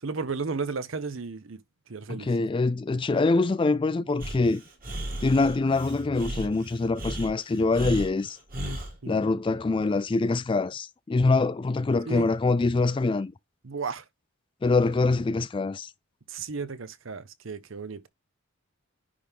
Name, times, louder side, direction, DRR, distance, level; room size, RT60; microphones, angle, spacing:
voice 1, 0.0-1.6 1.9-2.3 9.0-9.2 12.1-12.3 13.6-14.0 16.3-18.1, right 4 dB, 65° right, 0.8 m, -34 dB
voice 2, 2.1-4.6 5.2-8.4 9.1-13.3 14.6-15.9, left 3 dB, 25° left, 0.3 m, -24 dB
Breathing, 4.2-8.9, right 1 dB, 40° right, 2.5 m, -35 dB
10.0 x 3.5 x 3.6 m
head